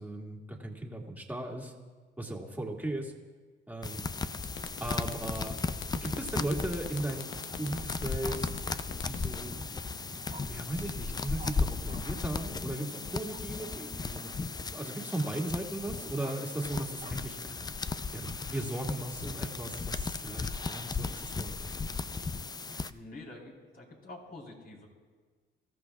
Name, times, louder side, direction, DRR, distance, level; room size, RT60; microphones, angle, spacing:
voice 1, 0.0-1.7 2.2-3.1 3.7-4.1 4.8-5.6 5.9-7.3 7.6-8.5 9.1-9.8 10.4-14.4 14.7-17.4 18.1-21.8, right 1 dB, 10° right, 0 dB, 2.2 m, -37 dB
sound 1, 3.8-22.9, left 4 dB, 20° left, 0.4 m, -36 dB
sound 2, 4.4-10.5, left 8 dB, 85° left, 0.9 m, -44 dB
Bark, 8.2-8.4 10.3-10.4 11.4-11.5 11.9-12.0 13.3-13.5 16.0-17.1, right 5 dB, 35° right, 1.0 m, -48 dB
voice 2, 22.9-24.9, left 2 dB, 50° left, -1 dB, 4.1 m, -47 dB
24.0 x 14.0 x 2.4 m, 1.4 s
cardioid pair, 90°, 20 cm